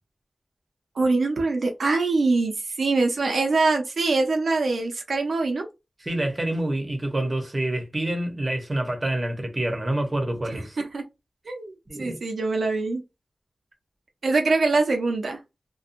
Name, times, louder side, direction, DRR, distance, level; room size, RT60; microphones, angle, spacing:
voice 1, 1.0-5.7 10.5-11.0 11.5-13.0 14.2-15.4, right 3 dB, 85° right, 0.7 m, -24 dB
voice 2, 6.0-10.8 11.9-12.2, right 1 dB, 30° right, 0.8 m, -27 dB
2.7 x 2.3 x 2.5 m
wide cardioid pair, 100°, 0 cm